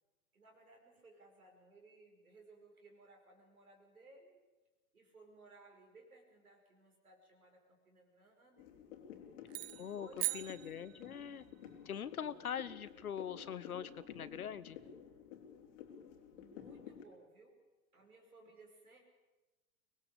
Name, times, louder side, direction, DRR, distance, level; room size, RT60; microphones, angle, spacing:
voice 1, 0.3-4.4 4.9-8.7 9.7-10.9 16.3-17.6 17.9-19.0, right 2 dB, 90° right, 2 dB, 5.6 m, -61 dB
sound 1, 8.6-17.0, left 8 dB, 60° left, 3.1 m, -53 dB
sound 2, 9.5-11.4, right 20 dB, 50° right, 0.7 m, -41 dB
voice 2, 9.7-11.5 11.8-14.8, left 8 dB, 85° left, 16 dB, 1.0 m, -43 dB
24.0 x 19.5 x 6.9 m, 1.1 s
hypercardioid pair, 95°, 42 cm